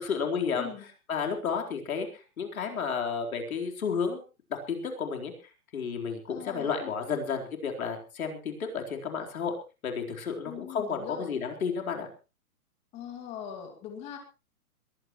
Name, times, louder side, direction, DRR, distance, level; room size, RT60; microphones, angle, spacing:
voice 1, 0.0-0.7 1.1-4.2 4.5-5.3 5.7-9.6 9.8-12.1, left 6 dB, 65° left, 2 dB, 4.2 m, -32 dB
voice 2, 6.3-6.8 10.4-11.3 12.9-14.2, left 9 dB, 15° left, 4 dB, 2.4 m, -41 dB
21.5 x 15.5 x 3.1 m, 0.32 s
hypercardioid pair, 170°, 45 cm